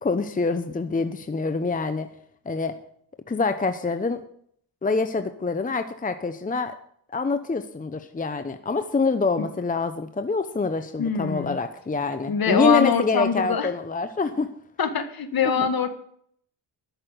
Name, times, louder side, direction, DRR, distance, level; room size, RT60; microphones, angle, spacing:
voice 1, 0.0-2.1 2.5-2.7 3.3-4.2 4.8-6.7 7.1-14.5 15.5-15.7, left 3 dB, 20° left, 9 dB, 0.9 m, -25 dB
voice 2, 11.0-11.6 12.3-13.7 14.8-15.9, left 6 dB, 50° left, 9 dB, 1.8 m, -23 dB
12.0 x 6.7 x 8.2 m, 0.65 s
cardioid pair, 85°, 46 cm